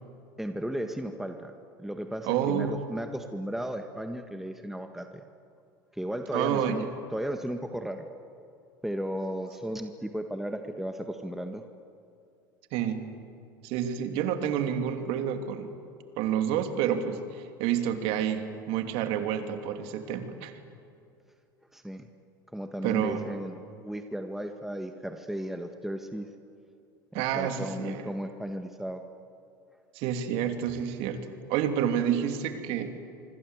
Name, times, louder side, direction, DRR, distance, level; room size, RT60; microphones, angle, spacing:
voice 1, 0.4-1.5 1.8-5.2 5.9-6.8 7.1-8.1 8.8-11.6 21.7-22.1 22.5-26.3 27.1-29.0, equal, 5° right, 5 dB, 1.7 m, -35 dB
voice 2, 2.2-2.8 6.3-6.8 12.7-13.0 13.6-15.7 16.2-20.6 22.8-23.3 27.1-28.0 29.9-33.0, right 9 dB, 65° right, 6 dB, 2.9 m, -29 dB
25.5 x 25.5 x 8.1 m, 2.5 s
hypercardioid pair, 80°, 11 cm